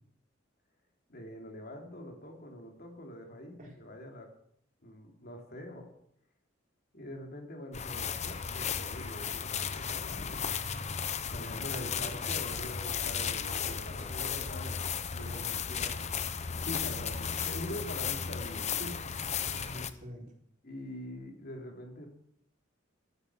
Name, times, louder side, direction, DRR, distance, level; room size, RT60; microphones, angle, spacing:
voice 1, 1.1-4.3 4.8-5.9 6.9-10.5 11.3-14.8 15.2-15.6 16.6-19.6 20.6-22.1, left 1 dB, 55° left, 2 dB, 3.4 m, -44 dB
sound 1, 7.7-19.9, left 7 dB, 35° left, 0.8 m, -35 dB
voice 2, 11.7-12.2 13.3-14.7 15.1-16.3 19.5-20.3, equal, 45° right, -1 dB, 4.5 m, -46 dB
13.5 x 11.0 x 7.4 m, 0.70 s
head